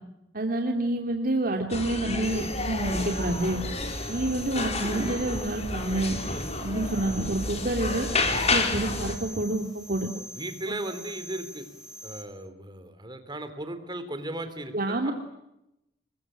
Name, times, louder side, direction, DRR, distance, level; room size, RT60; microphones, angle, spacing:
voice 1, 0.3-3.6 4.1-6.2 6.6-10.1 10.7-10.8 14.7-15.1, right 1 dB, 55° right, 3 dB, 2.8 m, -28 dB
sound 1, 1.7-9.1, left 3 dB, 35° left, 4.1 m, -30 dB
sound 2, 2.2-12.2, equal, 5° right, 6.8 m, -44 dB
voice 2, 10.3-11.7 12.0-15.1, right 1 dB, 25° right, 9 dB, 3.7 m, -36 dB
27.0 x 23.0 x 9.1 m, 0.89 s
head